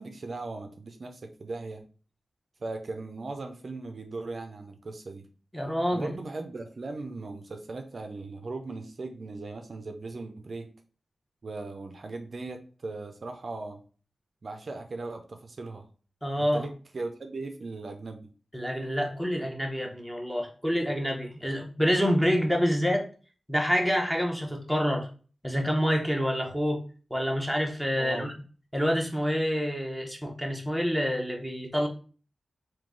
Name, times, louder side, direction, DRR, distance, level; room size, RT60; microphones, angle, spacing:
voice 1, 0.0-1.9 2.6-5.3 5.9-10.7 11.4-13.8 14.4-15.9 16.4-18.3 28.0-28.3, right 3 dB, 50° right, 5 dB, 0.4 m, -38 dB
voice 2, 5.5-6.2 16.2-16.6 18.5-23.0 23.5-25.1 25.4-26.8 27.1-28.3 28.7-31.9, equal, 5° left, 1 dB, 0.8 m, -27 dB
3.7 x 2.7 x 3.6 m, 0.38 s
wide cardioid pair, 130°, 0 cm